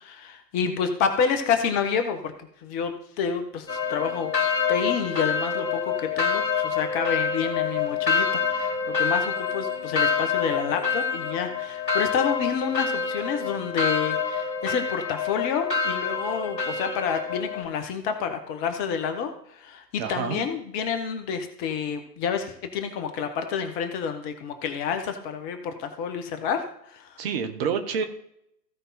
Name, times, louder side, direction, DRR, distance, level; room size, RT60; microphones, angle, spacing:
voice 1, 0.0-2.3 2.6-4.3 4.7-27.2, left 6 dB, 25° left, 7 dB, 1.1 m, -29 dB
sound 1, 3.7-17.6, left 5 dB, 85° left, 1.5 m, -27 dB
voice 2, 20.0-20.4 27.2-28.0, right 6 dB, 35° right, 8 dB, 1.2 m, -28 dB
15.5 x 5.3 x 4.2 m, 0.73 s
figure-of-eight pair, 110°, 49 cm